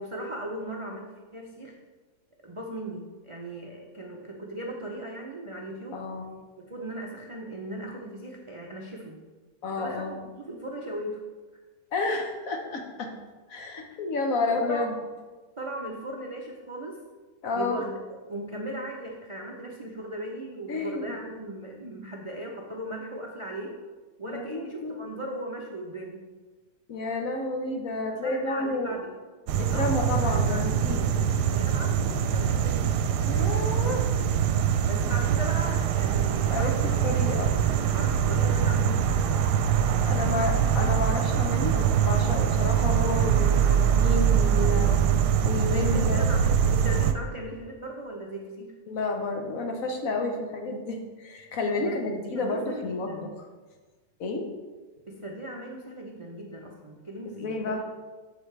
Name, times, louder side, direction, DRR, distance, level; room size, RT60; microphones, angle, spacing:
voice 1, 0.0-1.8 2.4-6.0 6.7-9.2 9.8-11.2 14.4-14.9 15.6-17.0 17.5-18.0 18.3-23.8 24.2-26.2 28.1-29.1 29.7-33.0 34.8-37.5 37.9-39.5 44.8-45.2 45.8-48.7 51.8-52.1 52.3-53.3 55.1-57.8, right 1 dB, 45° right, -1 dB, 0.3 m, -38 dB
voice 2, 5.9-6.3 9.6-10.1 11.9-13.1 13.5-14.9 17.4-17.8 20.7-21.2 24.3-25.0 26.9-28.9 29.6-31.1 33.3-34.1 36.5-37.5 40.1-44.9 45.4-46.2 48.9-53.3 54.2-54.5 57.3-57.8, left 3 dB, 60° left, 3 dB, 1.3 m, -30 dB
sound 1, 29.5-47.1, right 8 dB, 85° right, 1.2 m, -23 dB
8.0 x 7.3 x 3.3 m, 1.3 s
omnidirectional pair, 1.7 m